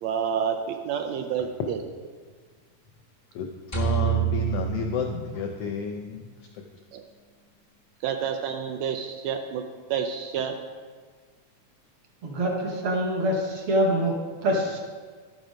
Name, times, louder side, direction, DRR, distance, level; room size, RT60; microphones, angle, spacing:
voice 1, 0.0-1.8 6.9-7.0 8.0-9.6 9.9-10.5, right 7 dB, 75° right, 5 dB, 1.7 m, -29 dB
voice 2, 3.7-6.6, left 4 dB, 80° left, 3 dB, 1.3 m, -31 dB
sound 1, 3.7-6.0, right 10 dB, 40° left, 0.6 m, -28 dB
voice 3, 12.2-14.1 14.4-14.8, right 1 dB, 60° right, 0 dB, 1.6 m, -25 dB
11.0 x 6.2 x 5.1 m, 1.5 s
omnidirectional pair, 3.5 m